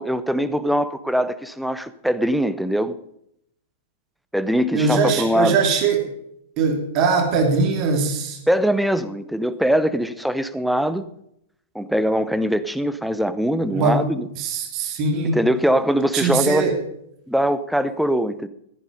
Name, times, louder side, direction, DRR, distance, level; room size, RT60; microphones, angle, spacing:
voice 1, 0.0-2.9 4.3-5.6 8.5-11.0 11.7-14.3 15.3-16.7 17.3-18.5, equal, ahead, 13 dB, 0.8 m, -22 dB
voice 2, 4.7-6.0 6.6-8.4 13.7-14.0 14.4-15.4 16.1-16.8, right 4 dB, 35° right, 3 dB, 2.7 m, -21 dB
14.0 x 10.5 x 5.4 m, 0.75 s
figure-of-eight pair, 100°, 0 cm